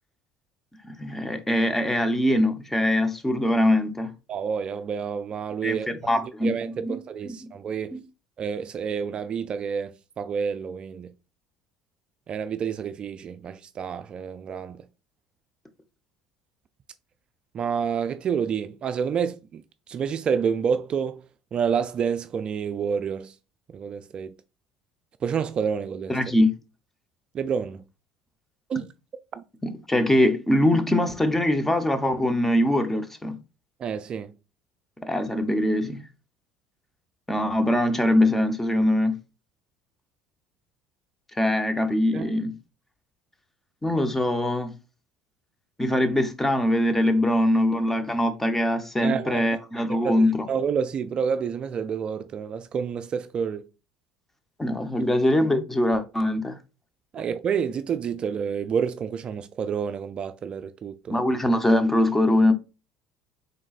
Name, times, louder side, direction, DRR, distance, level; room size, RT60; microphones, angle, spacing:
voice 1, 0.8-4.1 5.6-6.6 6.8-7.0 7.3-7.4 7.9-8.0 26.1-26.5 29.6-33.4 35.0-36.0 37.3-39.2 41.3-42.6 43.8-44.7 45.8-50.5 54.6-56.6 61.1-62.5, left 1 dB, 10° left, 0.8 m, -22 dB
voice 2, 4.3-5.9 6.4-8.0 8.4-11.1 12.3-14.8 17.5-21.2 21.5-23.3 23.7-24.3 25.2-26.2 27.3-27.8 28.7-28.9 29.3-29.4 33.8-34.3 42.1-42.4 49.0-49.5 50.0-53.7 57.1-61.2, right 7 dB, 40° right, 0.3 m, -29 dB
3.9 x 3.7 x 2.4 m
hypercardioid pair, 70°, 2 cm